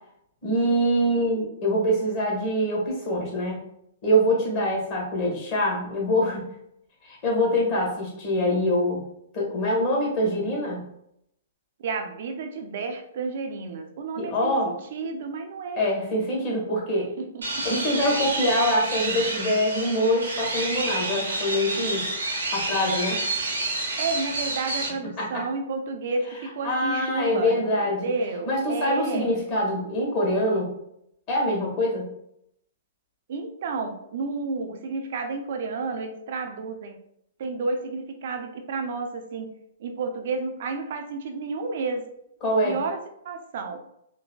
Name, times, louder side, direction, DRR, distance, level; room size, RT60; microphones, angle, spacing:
voice 1, 0.4-3.6 4.0-6.5 7.0-9.0 9.3-10.8 14.2-14.7 15.8-17.1 17.6-22.1 22.5-23.2 25.2-25.4 26.6-28.1 28.4-30.7 31.3-32.1 42.4-42.8, equal, 40° left, -3 dB, 1.5 m, -24 dB
voice 2, 11.8-15.8 17.2-17.7 24.0-29.3 33.3-37.0 37.4-39.5 39.8-42.0 42.6-43.8, right 3 dB, 60° right, 5 dB, 0.5 m, -31 dB
sound 1, 17.4-24.9, right 2 dB, 85° right, 0.8 m, -29 dB
4.0 x 2.2 x 2.2 m, 0.75 s
hypercardioid pair, 120°, 0 cm